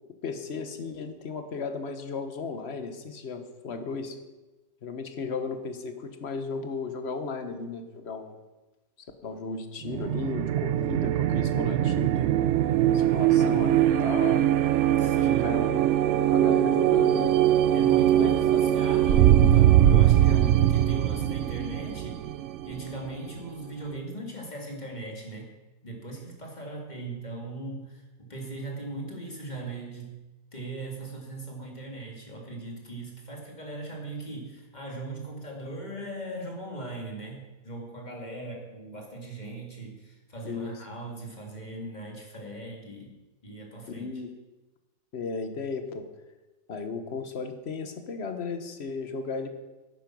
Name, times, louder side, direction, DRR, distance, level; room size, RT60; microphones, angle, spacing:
voice 1, 0.2-4.2 4.8-8.4 9.2-12.3 12.9-14.4 15.1-17.3 18.0-18.8 40.4-40.8 43.9-44.3 45.1-46.1 46.7-49.5, left 4 dB, 45° left, 7 dB, 1.2 m, -35 dB
sound 1, 9.8-23.3, right 12 dB, 70° right, 0.7 m, -22 dB
voice 2, 15.0-15.6 17.7-22.2 22.6-25.5 25.8-30.2 30.5-43.1 43.4-44.1, right 2 dB, 25° left, -1 dB, 2.4 m, -39 dB
10.5 x 9.0 x 6.1 m, 1.1 s
omnidirectional pair, 1.7 m